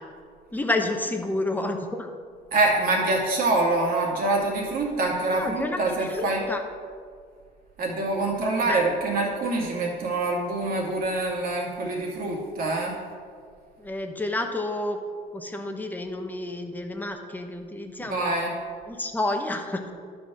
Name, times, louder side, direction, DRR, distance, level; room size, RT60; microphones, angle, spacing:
voice 1, 0.5-2.1 5.3-6.6 8.7-8.8 13.8-15.0 15.3-18.3 18.9-19.9, left 2 dB, 10° left, 4 dB, 1.0 m, -30 dB
voice 2, 2.5-6.4 7.8-12.9 18.0-18.5, right 2 dB, 60° right, -2 dB, 2.3 m, -25 dB
11.5 x 4.3 x 6.2 m, 2.1 s
cardioid pair, 110°, 17 cm